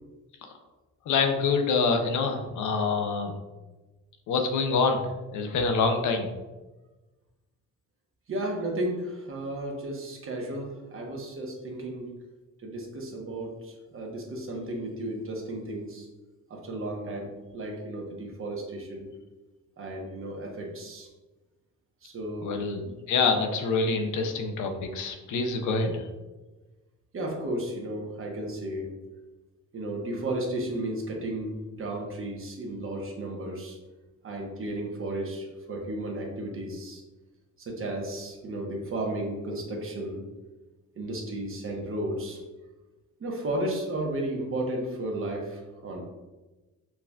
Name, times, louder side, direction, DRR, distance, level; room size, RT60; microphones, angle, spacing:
voice 1, 1.1-3.3 4.3-5.0 5.3-6.3 22.4-22.8 23.1-26.0, left 4 dB, 75° left, 4 dB, 0.6 m, -26 dB
voice 2, 8.3-12.1 12.6-16.1 16.5-19.1 19.8-21.1 22.0-22.9 27.1-28.9 29.7-33.8 34.2-37.0 37.7-40.2 41.0-42.4 43.2-46.0, right 1 dB, 45° right, 0 dB, 1.0 m, -34 dB
5.7 x 2.3 x 2.2 m, 1.1 s
cardioid pair, 90°, 30 cm